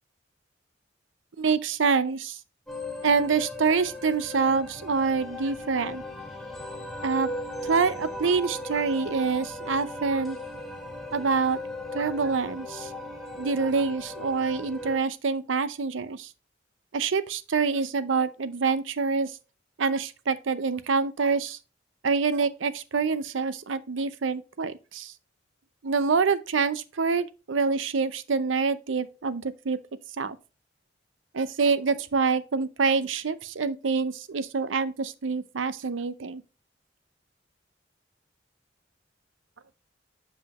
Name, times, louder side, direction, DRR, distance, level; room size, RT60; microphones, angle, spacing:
voice 1, 1.4-2.4 3.0-6.0 7.0-7.3 7.6-10.4 11.1-11.6 11.9-12.9 13.4-16.3 16.9-19.3 19.8-21.6 22.0-25.1 25.8-29.8 30.2-30.4 31.3-36.4, right 5 dB, 85° right, 0.6 m, -26 dB
sound 1, 2.7-15.0, left 1 dB, ahead, 1.4 m, -37 dB
7.4 x 5.6 x 2.9 m
head